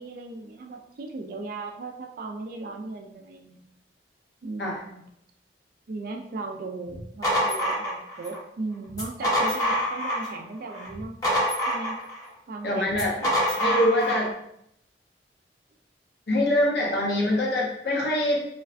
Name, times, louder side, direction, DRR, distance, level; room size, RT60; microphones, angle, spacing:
voice 1, 0.0-3.7 4.4-5.1 5.9-11.1 11.7-12.0 12.5-13.6, right 3 dB, 55° right, 3 dB, 0.3 m, -37 dB
sound 1, 6.9-8.4 8.9-10.4 10.7-12.2 12.9-14.3, equal, 20° left, 0.7 m, -26 dB
voice 2, 12.6-13.1 13.6-14.3 16.3-18.4, left 1 dB, 60° left, -2 dB, 0.7 m, -24 dB
2.4 x 2.1 x 2.4 m, 0.75 s
head